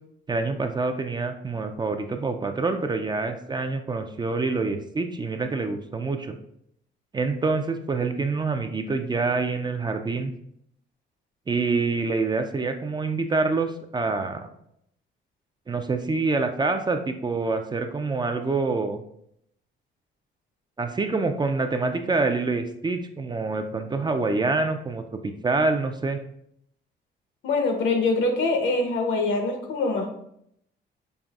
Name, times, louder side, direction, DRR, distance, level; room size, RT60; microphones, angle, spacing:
voice 1, 0.3-6.4 7.1-10.3 11.5-14.5 15.7-19.0 20.8-26.2, right 3 dB, 20° right, 6 dB, 0.3 m, -26 dB
voice 2, 27.4-30.2, left 3 dB, 75° left, 3 dB, 0.9 m, -24 dB
5.3 x 2.5 x 2.3 m, 0.73 s
cardioid pair, 90°, 20 cm